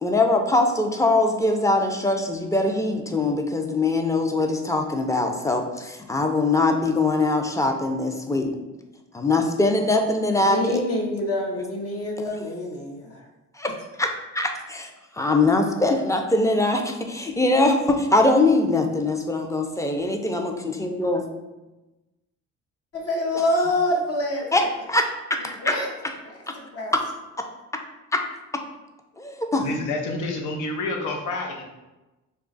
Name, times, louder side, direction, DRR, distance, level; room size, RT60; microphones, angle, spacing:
voice 1, 0.0-8.5 9.1-10.8 13.6-13.7 14.0-14.9 15.2-21.3 24.5-25.8 26.9-27.0 28.1-28.2 29.2-29.7, left 2 dB, 10° left, 4 dB, 0.4 m, -22 dB
voice 2, 10.4-13.2 22.9-24.7 25.6-25.9 26.3-26.4 26.7-26.9, left 1 dB, 50° left, 0 dB, 0.7 m, -26 dB
voice 3, 29.6-31.6, left 2 dB, 85° left, 2 dB, 0.7 m, -28 dB
3.2 x 2.3 x 3.8 m, 1.1 s
cardioid pair, 90°, 30 cm